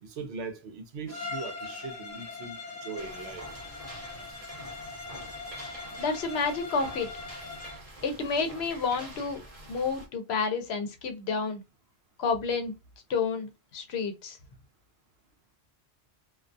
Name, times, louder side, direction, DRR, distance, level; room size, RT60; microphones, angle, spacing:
voice 1, 0.0-3.4, right 4 dB, 70° right, 0.8 m, -40 dB
Bowed string instrument, 1.1-7.9, left 3 dB, 20° left, 0.5 m, -41 dB
sound 1, 3.0-10.1, right 1 dB, 35° right, 0.9 m, -46 dB
voice 2, 6.0-7.1 8.0-9.4 9.7-11.6 12.2-12.7 13.1-14.4, left 5 dB, 70° left, 0.8 m, -30 dB
2.3 x 2.2 x 2.5 m
omnidirectional pair, 1.1 m